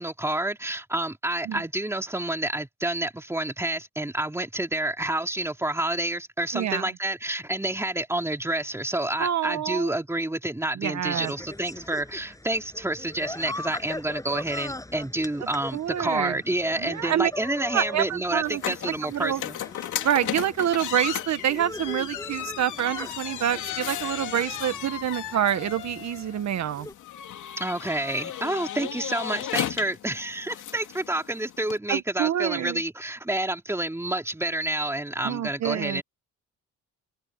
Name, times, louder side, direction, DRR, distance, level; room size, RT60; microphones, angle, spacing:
voice 1, 0.0-19.6 27.6-36.0, right 1 dB, 10° right, 3.1 m, -29 dB
voice 2, 6.5-6.9 9.2-9.9 10.8-11.3 15.7-16.4 16.8-17.3 17.7-18.6 19.0-19.4 20.0-26.9 31.9-32.8 35.2-36.0, right 10 dB, 65° right, 1.3 m, -27 dB
sound 1, 11.1-26.9, left 1 dB, 10° left, 7.7 m, -41 dB
sound 2, 18.4-31.8, left 12 dB, 80° left, 2.9 m, -35 dB
cardioid pair, 90°, 30 cm